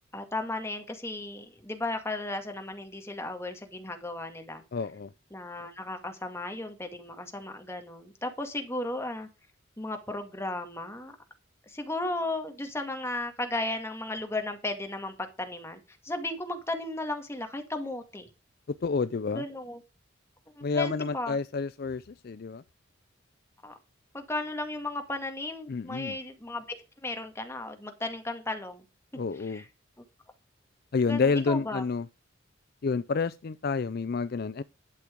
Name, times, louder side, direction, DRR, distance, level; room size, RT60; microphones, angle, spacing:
voice 1, 0.1-4.6 5.3-9.3 9.8-11.2 11.7-18.3 19.3-19.8 20.7-21.4 23.6-23.7 24.1-28.9 29.5-29.6 31.1-31.8, left 2 dB, 15° left, 1.9 m, -35 dB
voice 2, 4.7-5.1 18.7-19.4 20.6-22.6 25.7-26.2 29.1-29.6 30.9-32.1 32.8-34.6, left 4 dB, 50° left, 0.4 m, -29 dB
12.0 x 6.1 x 5.1 m
head